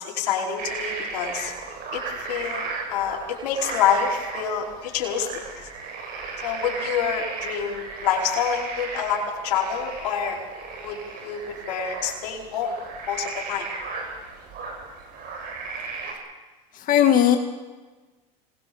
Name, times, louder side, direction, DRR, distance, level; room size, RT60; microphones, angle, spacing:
voice 1, 0.0-1.5 1.9-5.7 6.4-10.4 10.8-11.4 11.7-12.7 13.1-13.7, left 7 dB, 75° left, -1 dB, 5.1 m, -27 dB
sound 1, 0.6-16.1, right 4 dB, 45° right, 7.9 m, -35 dB
voice 2, 16.7-17.4, left 10 dB, 40° left, 5 dB, 1.9 m, -17 dB
26.0 x 20.5 x 7.1 m, 1.3 s
supercardioid pair, 105°, 21 cm